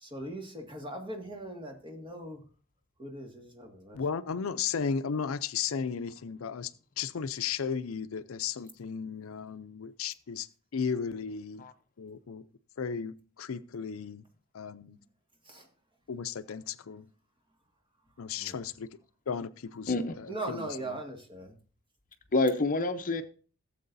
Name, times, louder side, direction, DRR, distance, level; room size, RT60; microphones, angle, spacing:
voice 1, 0.0-2.4 3.0-4.0 15.5-15.7 18.4-18.6 20.3-21.5, right 1 dB, 25° right, 1.9 m, -40 dB
voice 2, 3.9-6.7 7.0-11.6 12.0-12.5 12.8-14.2 14.5-15.0 16.1-17.1 18.2-18.9 19.3-21.0, left 6 dB, 75° left, 0.5 m, -35 dB
voice 3, 22.3-23.2, left 2 dB, 40° left, 0.7 m, -27 dB
16.5 x 7.6 x 2.6 m
head